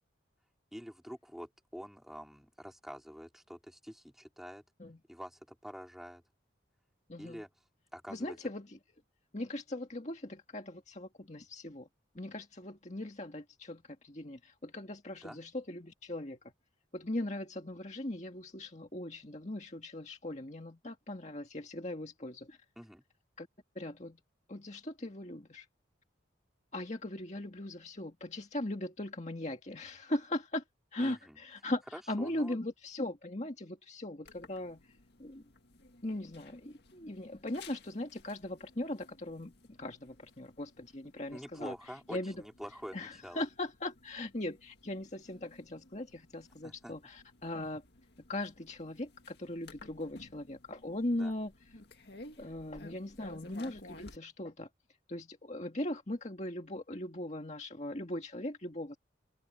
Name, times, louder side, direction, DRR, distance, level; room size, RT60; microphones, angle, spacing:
voice 1, 0.7-4.6 5.1-6.2 7.2-7.5 7.9-8.4 15.2-15.4 22.8-23.0 31.0-31.4 31.9-32.6 41.3-43.4 46.6-46.9 51.1-51.3, equal, ahead, 4.2 m, -47 dB
voice 2, 7.1-7.4 8.1-8.8 9.3-11.9 12.1-16.4 16.9-22.6 23.4-23.5 23.8-24.2 24.5-25.7 26.7-30.6 30.9-34.9 35.2-35.4 36.0-41.7 42.1-42.4 42.9-47.8 48.3-51.5 52.4-54.7 55.1-59.0, left 1 dB, 35° left, 2.0 m, -39 dB
sound 1, 34.2-54.2, left 2 dB, 55° left, 2.1 m, -56 dB
head